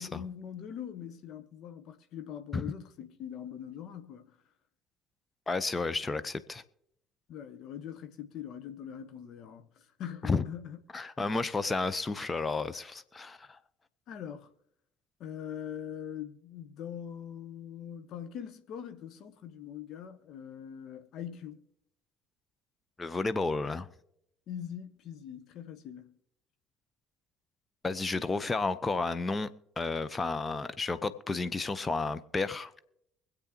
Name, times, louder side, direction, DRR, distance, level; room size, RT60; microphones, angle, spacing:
voice 1, 0.0-4.3 7.3-10.8 11.2-11.4 14.1-14.5 15.2-21.6 24.5-26.1, left 9 dB, 55° left, 1.2 m, -42 dB
voice 2, 5.5-6.6 10.2-10.4 10.9-13.6 23.0-23.9 27.8-29.5 29.8-32.7, left 3 dB, 20° left, 0.8 m, -32 dB
24.0 x 8.1 x 2.9 m
figure-of-eight pair, 55°, 0 cm